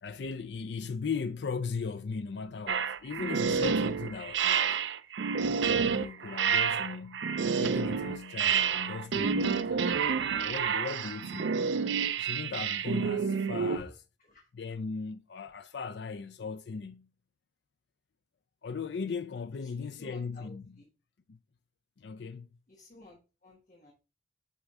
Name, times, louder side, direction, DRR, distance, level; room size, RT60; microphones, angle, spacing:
voice 1, 0.0-4.8 5.6-7.3 7.6-9.9 10.3-11.6 12.2-14.0 14.5-17.1 18.6-20.6 21.3-21.4 22.0-22.5, left 5 dB, 70° left, 0.4 m, -38 dB
sound 1, 2.7-13.8, right 6 dB, 85° right, 0.5 m, -29 dB
voice 2, 19.6-20.9 22.7-23.9, left 2 dB, 45° left, 1.3 m, -54 dB
8.2 x 3.5 x 4.1 m
head